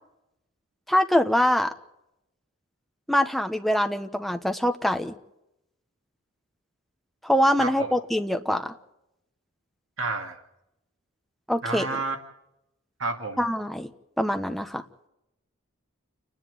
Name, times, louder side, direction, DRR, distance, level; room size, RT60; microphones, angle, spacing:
voice 1, 0.9-1.7 3.1-5.1 7.2-8.7 11.5-11.9 13.4-13.9 14.2-14.8, equal, ahead, 5 dB, 1.1 m, -24 dB
voice 2, 7.6-7.9 10.0-10.4 11.6-12.2 13.0-13.4, right 3 dB, 65° right, 4 dB, 2.2 m, -30 dB
29.5 x 10.5 x 9.6 m, 0.86 s
head